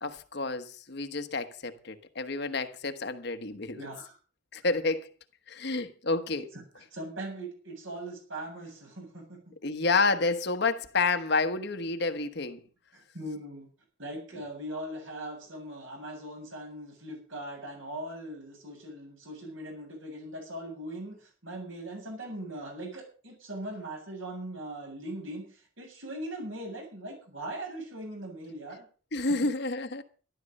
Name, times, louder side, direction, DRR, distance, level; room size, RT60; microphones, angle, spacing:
voice 1, 0.0-3.8 4.5-5.1 5.5-6.5 9.6-12.6 29.1-30.0, left 3 dB, 55° left, 1.2 m, -29 dB
voice 2, 3.8-4.2 6.5-9.4 12.9-13.7 14.0-28.9, right 1 dB, 70° right, 7.6 m, -40 dB
13.0 x 12.5 x 5.4 m
head